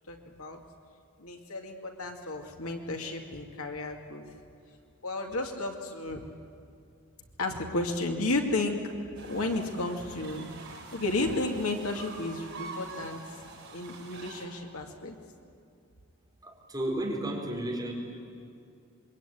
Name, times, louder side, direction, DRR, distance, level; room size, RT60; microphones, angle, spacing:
voice 1, 0.1-0.6 1.2-4.2 5.0-6.2 7.4-8.8 9.2-10.5 10.8-13.2 13.7-15.2, left 2 dB, 75° left, 3 dB, 2.3 m, -33 dB
sound 1, 9.1-14.5, right 3 dB, 55° right, 7.0 m, -45 dB
voice 2, 16.4-17.9, right 1 dB, 15° right, -2 dB, 4.5 m, -32 dB
26.0 x 23.0 x 9.3 m, 2.5 s
head